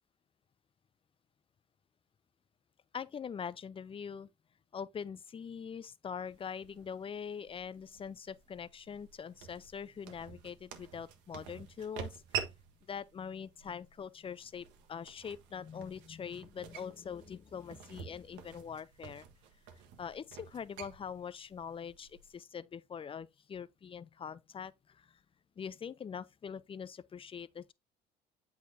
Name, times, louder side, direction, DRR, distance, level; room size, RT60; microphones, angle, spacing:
voice 1, 2.9-4.3 4.7-12.2 12.9-19.3 20.0-25.2 25.6-27.7, left 7 dB, 30° left, 0.5 m, -43 dB
sound 1, 6.3-22.4, right 9 dB, 70° right, 1.2 m, -48 dB
8.1 x 4.7 x 2.6 m
hypercardioid pair, 65°, 19 cm